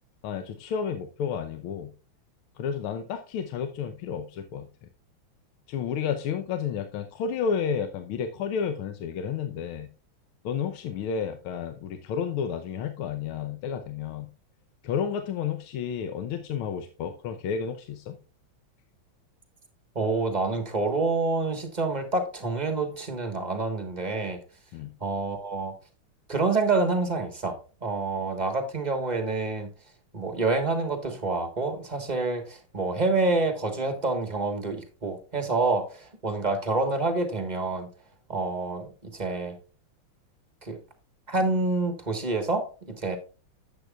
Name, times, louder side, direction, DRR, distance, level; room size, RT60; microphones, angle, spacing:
voice 1, 0.2-1.9 2.6-4.7 5.7-9.9 10.4-14.3 14.8-18.2 24.7-24.9, left 7 dB, 85° left, 7 dB, 1.6 m, -31 dB
voice 2, 19.9-24.4 25.0-25.7 26.3-29.7 30.1-37.9 38.3-39.6 40.6-40.8 41.3-43.2, right 3 dB, 25° right, 6 dB, 1.1 m, -27 dB
10.5 x 8.2 x 2.3 m, 0.34 s
omnidirectional pair, 2.3 m